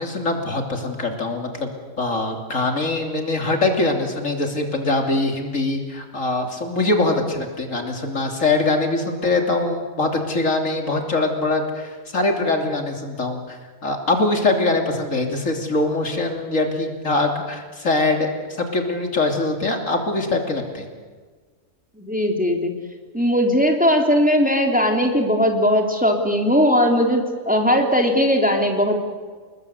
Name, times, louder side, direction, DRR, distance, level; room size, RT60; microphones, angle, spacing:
voice 1, 0.0-20.8, left 2 dB, 70° left, 4 dB, 3.4 m, -23 dB
voice 2, 22.0-22.7 23.1-29.0, equal, 5° right, 2 dB, 3.3 m, -19 dB
28.0 x 21.0 x 8.2 m, 1.5 s
omnidirectional pair, 1.4 m